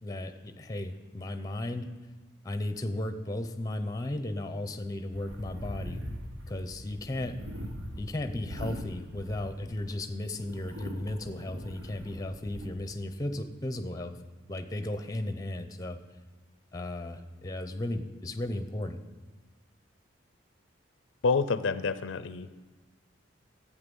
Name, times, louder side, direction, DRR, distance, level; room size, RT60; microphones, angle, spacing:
voice 1, 0.0-1.9 2.4-6.0 6.5-7.4 8.0-14.2 14.5-16.0 16.7-19.0, left 1 dB, 20° left, 9 dB, 0.6 m, -35 dB
sound 1, 5.1-9.9 10.3-12.7, equal, 80° right, 1.4 m, -41 dB
voice 2, 21.2-22.6, left 4 dB, 75° left, 13 dB, 0.4 m, -28 dB
11.5 x 8.4 x 5.4 m, 1.3 s
head